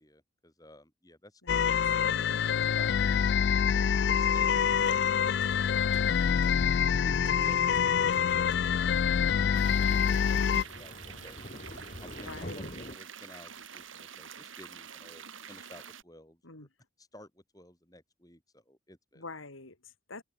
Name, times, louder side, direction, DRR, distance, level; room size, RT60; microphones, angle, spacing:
voice 1, 0.0-3.6 4.2-11.4 12.0-16.7 17.0-19.3, left 1 dB, 20° left, 7.1 m, -54 dB
sound 1, 1.5-10.6, left 7 dB, 55° left, 0.3 m, -26 dB
sound 2, 4.5-13.0, left 1 dB, 40° left, 4.7 m, -45 dB
voice 2, 6.2-6.8 12.3-12.7 16.4-16.7 19.2-20.2, left 3 dB, 90° left, 3.6 m, -47 dB
sound 3, 9.5-16.0, right 7 dB, 80° right, 3.8 m, -47 dB
head